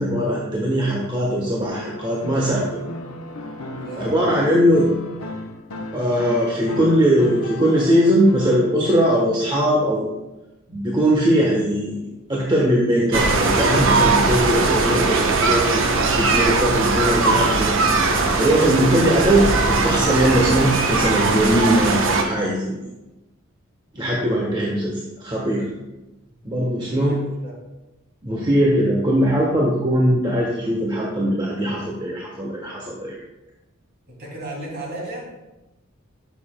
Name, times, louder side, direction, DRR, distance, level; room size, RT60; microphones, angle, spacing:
voice 1, 0.0-2.6 4.0-4.9 5.9-10.1 10.7-12.0 12.3-17.7 18.1-22.8 23.9-25.7 26.4-27.2 28.2-33.2, equal, 20° right, -3 dB, 1.1 m, -20 dB
sound 1, 1.7-8.6, left 1 dB, 85° left, 0.9 m, -35 dB
voice 2, 3.8-4.1 23.9-24.3 27.1-27.5 34.2-35.3, right 2 dB, 50° right, -2 dB, 2.6 m, -34 dB
sound 2, 13.1-22.2, right 3 dB, 65° right, 0.9 m, -19 dB
12.5 x 6.8 x 2.2 m, 1.0 s
head